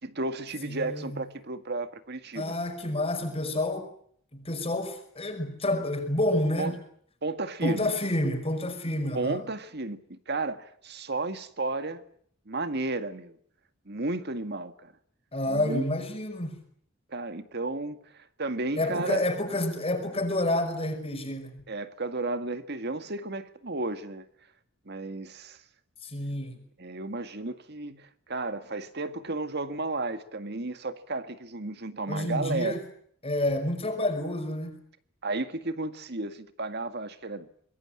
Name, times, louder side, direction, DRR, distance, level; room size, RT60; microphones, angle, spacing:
voice 1, 0.0-2.5 6.6-6.8 7.2-7.9 9.1-12.0 12.5-13.4 13.9-14.9 15.5-15.8 17.1-19.3 21.7-24.2 24.9-25.6 26.8-32.8 35.2-37.5, right 2 dB, 50° right, 1.9 m, -33 dB
voice 2, 0.6-1.2 2.4-3.9 4.3-6.8 7.6-9.4 15.3-16.6 18.8-21.6 26.0-26.6 32.1-32.8 33.2-34.8, left 1 dB, 30° left, 5.3 m, -29 dB
25.0 x 21.5 x 8.9 m
head